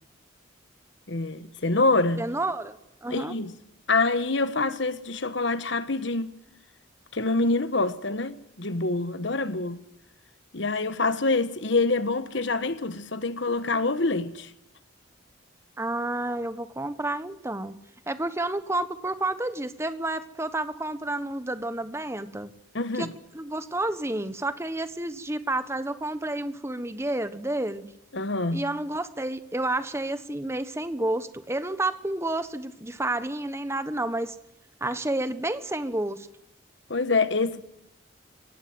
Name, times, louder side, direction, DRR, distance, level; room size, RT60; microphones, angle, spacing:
voice 1, 1.1-2.3 3.1-3.6 3.9-6.4 7.1-9.8 10.5-14.5 22.7-23.1 28.1-28.7 36.9-37.6, left 3 dB, 65° left, 1.3 m, -26 dB
voice 2, 2.2-3.4 15.8-17.7 18.1-22.5 22.9-23.1 23.3-27.9 28.5-34.3 34.8-36.3, right 2 dB, 15° right, 1.2 m, -30 dB
23.0 x 17.5 x 7.9 m
head